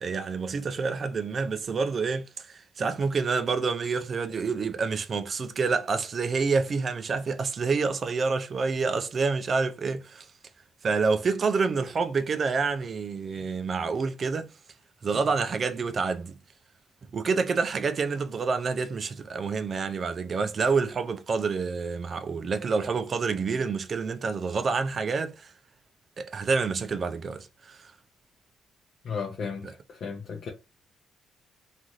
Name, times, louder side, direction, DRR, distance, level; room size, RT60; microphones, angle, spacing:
voice 1, 0.0-10.3 10.8-14.5 15.0-16.3 17.1-25.5 26.2-27.9 29.6-29.7, right 4 dB, 45° right, 0.3 m, -28 dB
voice 2, 29.0-30.5, left 5 dB, 60° left, 0.6 m, -35 dB
2.5 x 2.4 x 3.0 m
cardioid pair, 90°, 0 cm